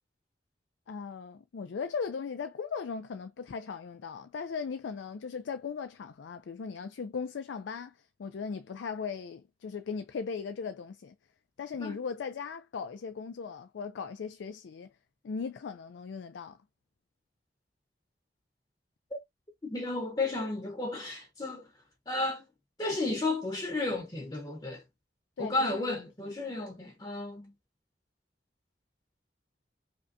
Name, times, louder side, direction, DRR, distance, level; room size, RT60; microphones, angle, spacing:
voice 1, 0.9-7.9 8.2-11.1 11.6-14.9 15.2-16.6 25.4-26.3, left 5 dB, 90° left, 0.4 m, -38 dB
voice 2, 19.6-21.6 22.1-22.4 22.8-24.8 25.4-27.5, left 2 dB, 25° left, 0.8 m, -33 dB
5.2 x 2.2 x 2.6 m
head